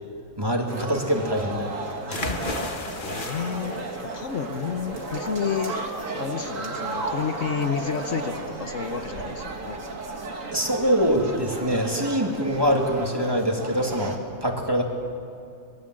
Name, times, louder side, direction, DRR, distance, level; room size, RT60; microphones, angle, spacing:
voice 1, 0.4-1.7 2.1-2.3 10.5-14.8, equal, 15° right, 1 dB, 2.5 m, -24 dB
sound 1, 0.7-14.2, right 3 dB, 65° right, 2.4 m, -34 dB
sound 2, 2.1-9.8, left 3 dB, 40° left, 1.6 m, -37 dB
voice 2, 3.0-5.8 6.1-9.8, left 7 dB, 60° left, 7 dB, 1.2 m, -30 dB
25.5 x 20.0 x 7.7 m, 2.4 s
omnidirectional pair, 1.5 m